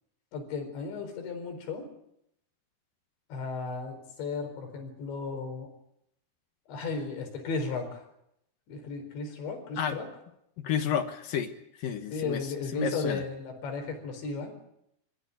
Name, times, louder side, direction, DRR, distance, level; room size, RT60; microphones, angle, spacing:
voice 1, 0.3-1.9 3.3-5.7 6.7-8.1 8.7-10.1 12.1-14.6, left 4 dB, 90° left, 5 dB, 6.8 m, -35 dB
voice 2, 10.6-11.5 11.8-12.4 12.7-13.2, left 8 dB, 65° left, 8 dB, 2.7 m, -30 dB
27.0 x 15.5 x 9.4 m, 0.79 s
omnidirectional pair, 5.0 m